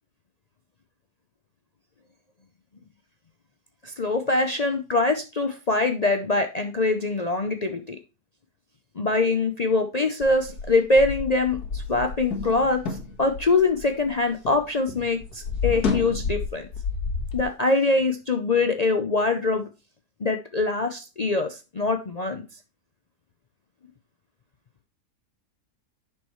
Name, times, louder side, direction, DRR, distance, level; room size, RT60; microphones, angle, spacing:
voice 1, 3.8-8.0 9.0-16.7 17.3-19.6 20.2-22.4, left 3 dB, 50° left, 5 dB, 0.5 m, -24 dB
sound 1, 10.2-14.6 14.9-17.4, left 5 dB, 80° left, 2.0 m, -30 dB
8.6 x 6.3 x 3.1 m, 0.29 s
omnidirectional pair, 1.6 m